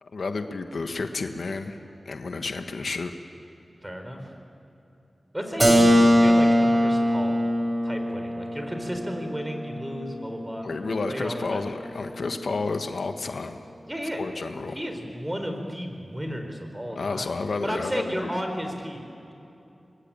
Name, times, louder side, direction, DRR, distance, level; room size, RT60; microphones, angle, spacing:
voice 1, 0.0-1.8 2.0-3.1 10.6-13.6 14.2-14.8 17.0-18.3, left 3 dB, 75° left, 7 dB, 1.3 m, -31 dB
voice 2, 3.8-4.3 5.3-7.4 7.8-10.7 11.1-11.6 13.9-14.2 14.7-17.3 17.6-19.3, equal, 10° right, 5 dB, 4.3 m, -33 dB
Keyboard (musical), 5.6-11.2, equal, 35° right, 4.3 m, -22 dB
24.5 x 21.5 x 8.8 m, 2.9 s
cardioid pair, 55°, 0 cm